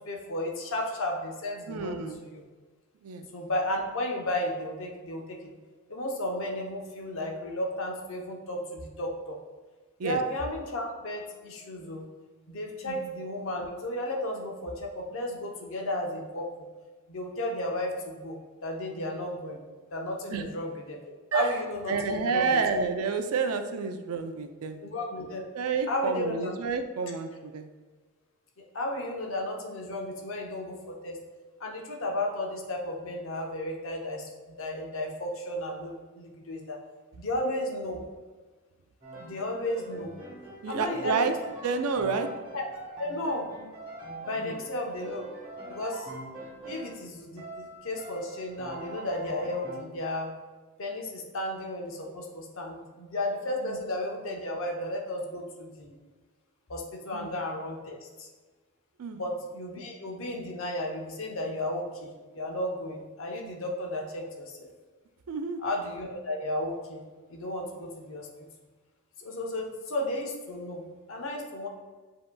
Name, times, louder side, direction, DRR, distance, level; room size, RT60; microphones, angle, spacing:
voice 1, 0.1-2.0 2.3-2.4 3.3-5.5 5.9-9.4 10.0-12.1 12.5-16.7 17.1-19.6 19.9-21.0 21.3-22.6 24.8-25.4 25.9-26.5 28.7-31.2 31.6-36.8 37.2-38.0 39.2-40.1 40.7-41.4 42.5-42.7 43.0-43.5 44.2-45.3 45.7-46.1 46.6-50.3 50.8-56.0 56.7-58.3 59.1-64.7 65.6-67.0 67.3-68.5 69.2-71.7, left 1 dB, 60° left, 1 dB, 0.8 m, -33 dB
voice 2, 1.7-2.3 3.0-3.3 10.0-10.2 12.8-13.0 20.3-20.4 21.3-21.5 21.9-24.8 25.5-27.7 40.6-41.3 41.6-42.3 44.3-44.6 53.6-53.8 57.1-57.3 59.0-59.2 65.3-65.6, right 5 dB, 85° right, 8 dB, 0.4 m, -29 dB
Piano, 39.0-47.1 47.4-49.7, right 1 dB, 25° right, 1.3 m, -43 dB
7.4 x 2.8 x 2.2 m, 1.4 s
head